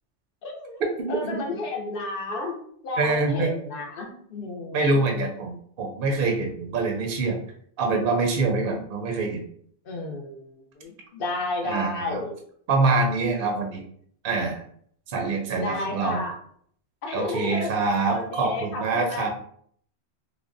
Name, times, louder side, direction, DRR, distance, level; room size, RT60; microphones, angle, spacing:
voice 1, 0.4-0.8 1.1-2.6 2.8-5.0 9.8-12.4 15.6-16.3 17.0-17.7 18.1-19.3, left 2 dB, 60° left, 2 dB, 0.7 m, -32 dB
voice 2, 3.0-3.5 4.7-7.4 7.8-9.4 11.6-12.2 12.7-13.8 14.2-14.7 15.1-16.2 17.1-19.3, right 3 dB, 60° right, 1 dB, 0.6 m, -25 dB
3.3 x 2.1 x 2.4 m, 0.63 s
omnidirectional pair, 1.2 m